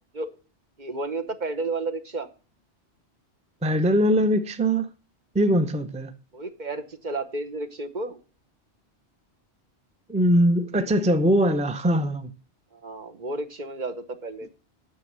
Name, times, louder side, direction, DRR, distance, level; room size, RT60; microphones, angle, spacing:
voice 1, 0.8-2.3 6.3-8.2 12.8-14.5, right 2 dB, 45° right, 1.1 m, -32 dB
voice 2, 3.6-4.9 5.3-6.1 10.1-12.3, equal, 5° right, 0.6 m, -21 dB
9.6 x 6.9 x 7.4 m
omnidirectional pair, 1.1 m